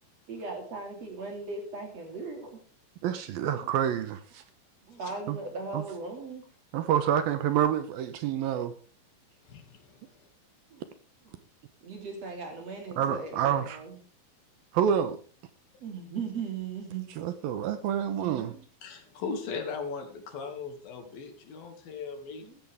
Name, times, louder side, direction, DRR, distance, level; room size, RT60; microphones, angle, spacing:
voice 1, 0.3-2.6 3.5-3.7 4.9-6.4 10.7-10.9 11.8-14.0 15.8-17.1 18.1-18.7 22.4-22.6, right 4 dB, 40° right, 2 dB, 4.4 m, -38 dB
voice 2, 3.0-4.4 5.3-5.4 5.7-5.8 6.7-8.8 13.0-13.8 14.7-15.2 17.2-18.5, right 9 dB, 75° right, 10 dB, 2.7 m, -28 dB
voice 3, 9.5-10.3 18.8-22.5, left 5 dB, 65° left, 5 dB, 4.0 m, -38 dB
16.0 x 14.0 x 3.6 m, 0.39 s
omnidirectional pair, 4.5 m